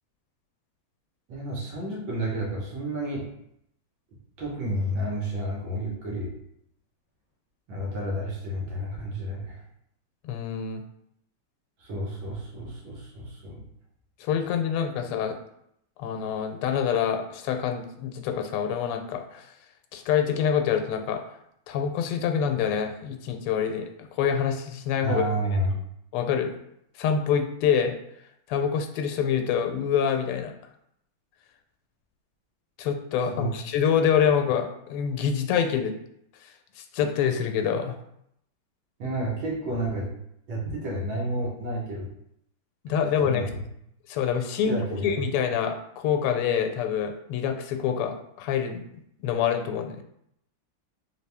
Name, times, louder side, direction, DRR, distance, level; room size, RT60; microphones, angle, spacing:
voice 1, 1.3-3.3 4.4-6.3 7.7-9.6 11.8-13.6 25.0-25.8 33.3-33.5 39.0-40.1 40.5-42.1 43.2-43.6 44.6-45.2, right 1 dB, 65° right, -3 dB, 1.7 m, -30 dB
voice 2, 10.2-10.8 14.2-15.4 16.0-19.5 19.9-21.2 21.7-25.2 26.1-26.5 27.0-27.9 28.5-30.5 32.8-35.9 36.8-38.0 42.8-43.5 44.1-44.8 45.0-48.8 49.2-50.0, left 7 dB, 90° left, 6 dB, 1.5 m, -26 dB
4.3 x 2.8 x 3.3 m, 0.75 s
omnidirectional pair, 2.4 m